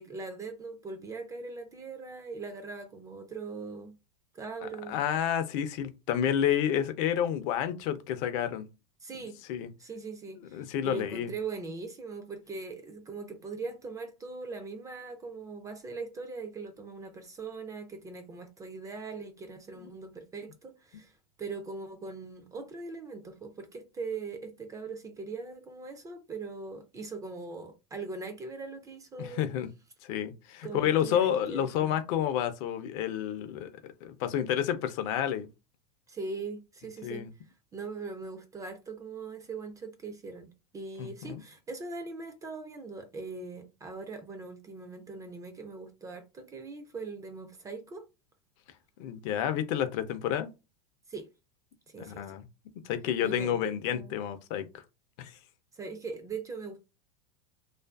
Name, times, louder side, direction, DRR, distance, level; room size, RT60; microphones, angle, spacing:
voice 1, 0.0-4.0 4.3-5.0 9.0-9.4 9.8-29.5 30.6-31.9 36.1-37.3 37.7-48.1 51.1-51.3 51.9-52.2 53.2-54.1 55.7-56.8, right 4 dB, 15° right, 0.3 m, -41 dB
voice 2, 4.6-8.7 9.5-9.7 10.5-11.3 19.8-19.9 29.2-29.7 30.0-33.7 34.0-35.5 37.0-37.3 41.0-41.4 49.0-50.5 52.0-52.4 52.8-54.7 55.2-55.3, left 10 dB, 50° left, 0.5 m, -30 dB
2.4 x 2.4 x 2.3 m
supercardioid pair, 125°, 21 cm